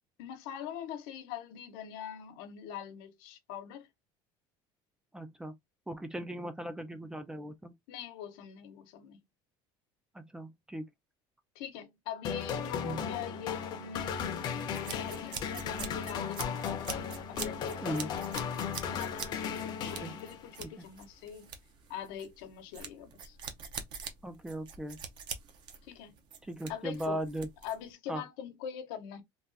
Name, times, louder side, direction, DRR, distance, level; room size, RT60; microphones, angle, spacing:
voice 1, 0.2-3.9 7.9-9.2 11.5-16.8 17.3-18.2 18.8-21.6 21.9-23.4 25.8-26.2 26.7-27.2 27.6-29.2, left 9 dB, 90° left, 0.9 m, -43 dB
voice 2, 5.1-5.5 5.9-7.7 10.1-10.9 12.8-13.0 17.8-18.1 19.8-20.1 24.2-25.0 26.4-27.5 28.1-28.2, right 1 dB, 5° right, 0.3 m, -38 dB
sound 1, 12.2-20.6, left 7 dB, 40° left, 0.6 m, -36 dB
sound 2, 14.7-27.9, right 6 dB, 45° right, 0.6 m, -44 dB
3.4 x 2.3 x 2.5 m
cardioid pair, 150°, 11 cm